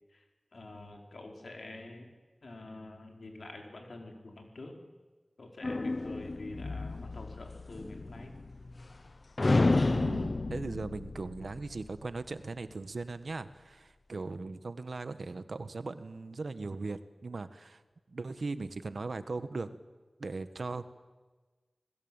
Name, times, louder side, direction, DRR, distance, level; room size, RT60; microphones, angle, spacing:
voice 1, 0.5-2.1 2.4-4.7 5.4-8.3, left 2 dB, 85° left, 3 dB, 4.8 m, -46 dB
sound 1, 5.6-9.1 9.4-12.1, left 2 dB, 55° left, 1.0 m, -31 dB
voice 2, 9.9-17.8 18.1-19.8 20.2-20.9, right 3 dB, 80° right, 12 dB, 1.4 m, -39 dB
27.0 x 20.5 x 9.0 m, 1.3 s
wide cardioid pair, 60°, 0 cm